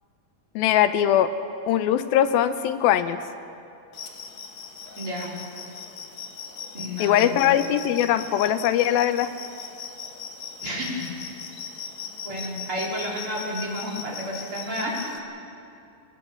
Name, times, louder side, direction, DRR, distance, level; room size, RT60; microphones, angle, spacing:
voice 1, 0.6-1.3 1.7-3.2 7.0-9.3, left 11 dB, 80° left, 11 dB, 2.5 m, -21 dB
sound 1, 3.9-15.2, left 6 dB, 60° left, 1.3 m, -39 dB
voice 2, 5.0-5.3 6.7-7.6 10.6-11.0 12.2-15.1, equal, 35° right, -4 dB, 4.7 m, -31 dB
24.0 x 20.5 x 7.2 m, 2.6 s
omnidirectional pair, 4.3 m